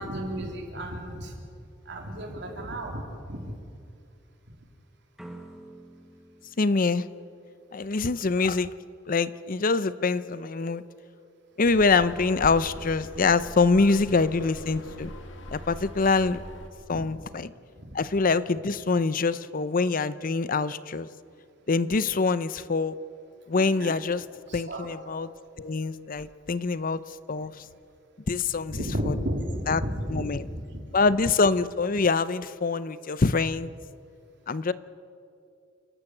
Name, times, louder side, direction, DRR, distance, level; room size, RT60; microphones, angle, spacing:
voice 1, 0.0-1.4 1.9-3.5 16.9-17.1 17.8-18.0 23.5-24.0 24.5-24.9 28.7-30.6, equal, 65° right, 2 dB, 3.5 m, -33 dB
sound 1, 5.2-8.1, right 1 dB, ahead, 1.4 m, -48 dB
voice 2, 6.6-7.1 7.7-8.7 9.1-10.8 11.6-15.1 15.5-16.4 16.9-17.5 17.9-21.1 21.7-22.9 23.5-24.2 24.5-25.3 25.6-27.0 27.3-27.6 28.3-29.2 29.7-29.8 30.1-30.5 30.9-33.7 34.5-34.7, left 4 dB, 45° left, 16 dB, 0.6 m, -25 dB
sound 2, 11.6-16.7, left 1 dB, 75° left, 2.3 m, -42 dB
29.0 x 12.5 x 8.3 m, 2.4 s
head